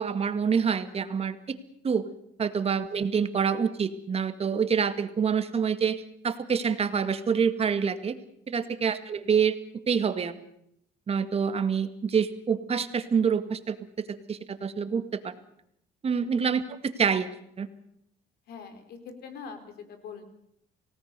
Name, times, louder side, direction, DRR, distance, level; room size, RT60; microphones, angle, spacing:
voice 1, 0.0-1.6 1.8-2.1 2.4-8.1 8.5-9.6 9.9-10.4 11.1-15.3 16.0-17.3 17.6-17.7, right 6 dB, 35° right, 10 dB, 1.9 m, -27 dB
voice 2, 18.5-20.2, left 6 dB, 70° left, 9 dB, 4.4 m, -44 dB
28.5 x 18.0 x 6.8 m, 0.73 s
cardioid pair, 110°, 17 cm